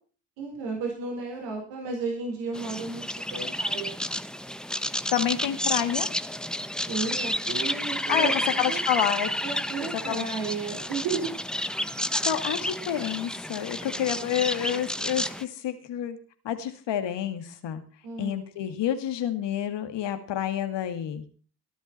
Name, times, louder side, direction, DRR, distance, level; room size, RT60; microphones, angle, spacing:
voice 1, 0.4-4.0 6.9-8.8 9.4-11.4 18.0-18.4, right 4 dB, 85° right, 0 dB, 4.8 m, -33 dB
sound 1, 2.5-15.4, equal, ahead, 1.2 m, -31 dB
voice 2, 5.1-6.1 8.1-8.3 8.6-9.3 10.1-10.3 12.2-16.2 16.4-17.8 18.2-21.2, left 10 dB, 70° left, 8 dB, 2.3 m, -28 dB
19.5 x 11.5 x 4.4 m, 0.40 s
hypercardioid pair, 40°, 44 cm